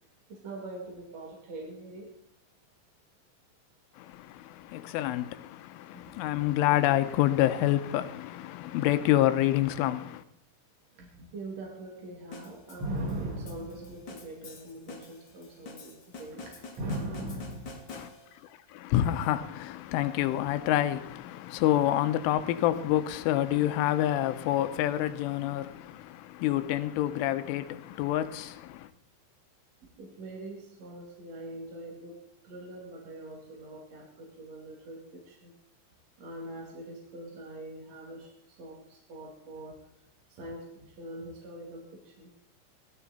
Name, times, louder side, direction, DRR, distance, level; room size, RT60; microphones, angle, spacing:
voice 1, 0.3-2.2 5.9-6.4 10.9-17.9 29.9-35.5 36.2-39.9 40.3-42.4, right 1 dB, 40° right, 3.0 m, -41 dB
voice 2, 4.0-10.2 17.9-18.1 18.7-28.9, left 13 dB, 90° left, 3.4 m, -28 dB
sound 1, 12.3-18.5, left 4 dB, 65° left, 1.1 m, -47 dB
17.5 x 13.0 x 4.2 m
omnidirectional pair, 5.5 m